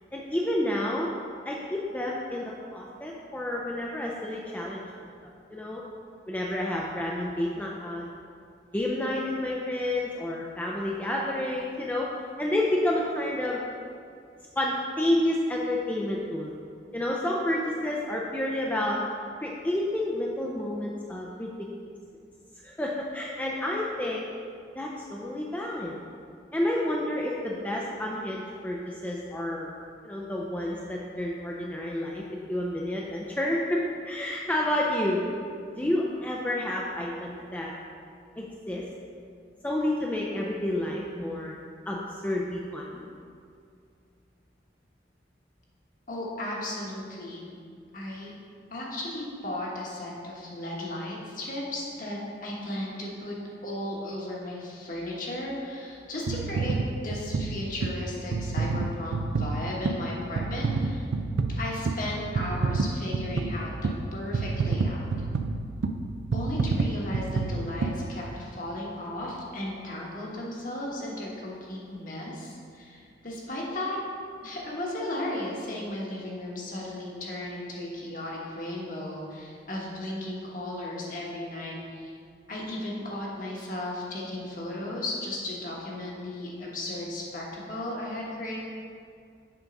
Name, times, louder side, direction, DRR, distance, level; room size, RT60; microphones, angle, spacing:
voice 1, 0.1-1.1 1.5-4.8 5.5-5.8 6.3-8.1 8.7-12.1 12.4-13.6 14.6-16.5 16.9-19.0 19.4-21.7 22.6-24.3 24.8-25.9 26.5-29.7 30.0-35.2 35.7-37.7 38.4-38.8 39.6-41.5 41.9-43.1, left 1 dB, 10° left, -3 dB, 0.4 m, -30 dB
voice 2, 46.1-47.5 47.9-48.3 48.7-53.3 53.6-56.8 57.0-61.0 61.5-65.1 66.3-74.0 74.4-82.1 82.5-88.6, left 1 dB, 50° left, -3 dB, 1.3 m, -35 dB
sound 1, 56.3-68.7 69.2-69.4, right 3 dB, 85° right, 0.4 m, -29 dB
7.2 x 3.8 x 5.2 m, 2.3 s
head